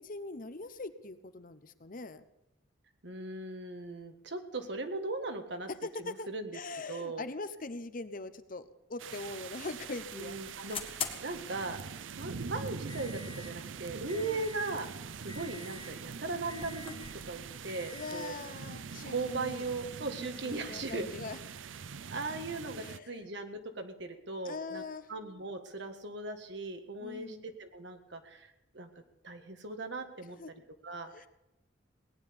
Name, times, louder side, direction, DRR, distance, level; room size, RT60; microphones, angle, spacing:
voice 1, 0.0-2.3 5.8-6.3 6.5-10.4 14.1-14.5 17.9-19.6 20.2-21.4 22.8-23.2 24.4-25.1 27.0-27.4 30.4-30.5 31.1-31.3, left 3 dB, 45° left, 11 dB, 1.0 m, -42 dB
voice 2, 3.0-5.7 6.0-6.5 6.9-7.2 10.2-11.8 12.2-16.9 17.3-18.3 19.0-21.1 22.1-24.8 25.1-28.9 29.2-30.4 30.8-31.3, right 3 dB, 65° right, 7 dB, 1.8 m, -38 dB
sound 1, 9.0-23.0, right 5 dB, 90° right, 0.6 m, -44 dB
sound 2, 9.5-21.9, left 6 dB, 30° left, 1.7 m, -48 dB
18.5 x 10.0 x 6.9 m, 0.90 s
head